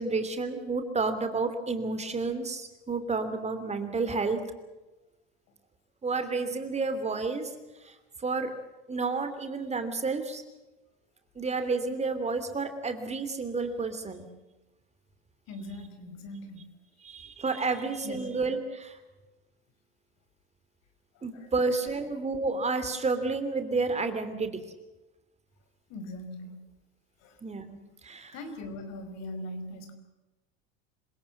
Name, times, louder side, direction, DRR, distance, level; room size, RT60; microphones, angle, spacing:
voice 1, 0.0-4.4 6.0-7.5 7.8-8.5 8.9-10.4 11.4-14.3 17.0-19.0 21.2-24.5 27.4-28.3, right 3 dB, 20° right, 9 dB, 2.9 m, -30 dB
voice 2, 15.5-16.7 18.0-18.3 21.1-21.5 25.9-26.6 27.2-27.4 28.3-29.9, left 1 dB, 55° left, 8 dB, 5.2 m, -41 dB
27.0 x 17.5 x 7.3 m, 1.1 s
hypercardioid pair, 95°, 31 cm